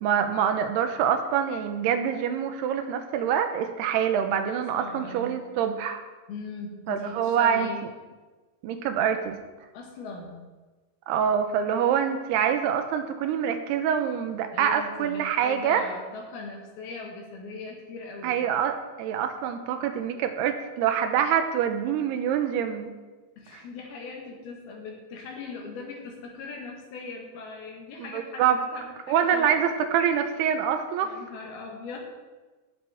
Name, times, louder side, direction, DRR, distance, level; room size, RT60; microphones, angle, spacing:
voice 1, 0.0-6.0 6.9-7.7 8.6-9.4 11.1-15.8 18.2-22.9 28.0-28.6 29.1-31.1, right 8 dB, 75° right, 7 dB, 2.8 m, -25 dB
voice 2, 4.3-5.4 6.3-7.8 9.7-10.4 14.5-18.4 23.4-29.7 31.0-32.0, left 3 dB, 70° left, 1 dB, 3.1 m, -40 dB
17.5 x 7.6 x 3.6 m, 1.3 s
omnidirectional pair, 4.9 m